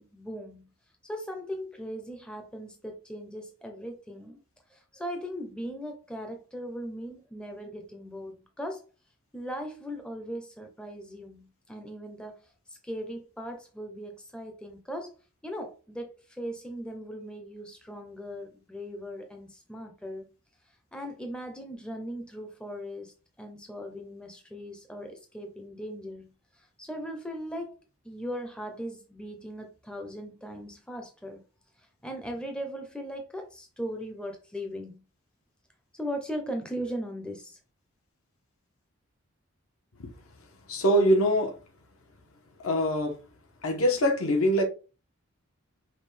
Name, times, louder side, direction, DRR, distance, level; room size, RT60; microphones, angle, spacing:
voice 1, 0.1-0.7 1.0-4.4 4.7-8.8 9.3-12.4 12.7-15.1 15.4-20.3 20.9-27.8 28.0-31.4 32.0-35.0 35.9-37.6, equal, 5° left, 0.5 m, -38 dB
voice 2, 40.7-41.6 42.6-43.2 43.6-44.6, equal, 70° left, 1.0 m, -23 dB
5.3 x 2.3 x 3.2 m
head